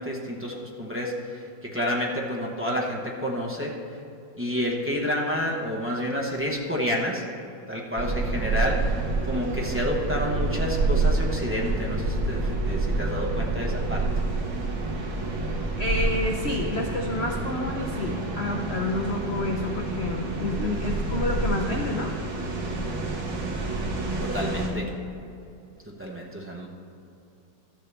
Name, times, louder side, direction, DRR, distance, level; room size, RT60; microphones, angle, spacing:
voice 1, 0.0-3.7 4.4-7.2 7.7-8.9 9.3-14.0 24.2-24.9 26.0-26.7, equal, 20° right, -3 dB, 0.3 m, -29 dB
sound 1, 8.0-24.7, right 3 dB, 80° right, 2.1 m, -28 dB
voice 2, 15.8-22.1, left 2 dB, 80° left, 1 dB, 0.5 m, -29 dB
13.5 x 7.6 x 3.4 m, 2.7 s
omnidirectional pair, 2.0 m